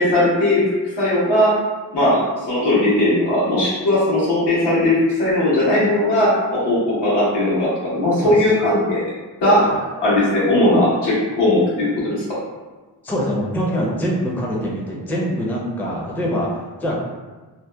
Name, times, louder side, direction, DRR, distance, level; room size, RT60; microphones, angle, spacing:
voice 1, 0.0-1.6 1.9-9.1 9.4-9.6 10.0-12.2, left 1 dB, 80° left, -8 dB, 1.1 m, -18 dB
voice 2, 13.0-17.0, equal, 5° left, -4 dB, 0.4 m, -24 dB
2.7 x 2.1 x 2.2 m, 1.3 s
cardioid pair, 90°, 41 cm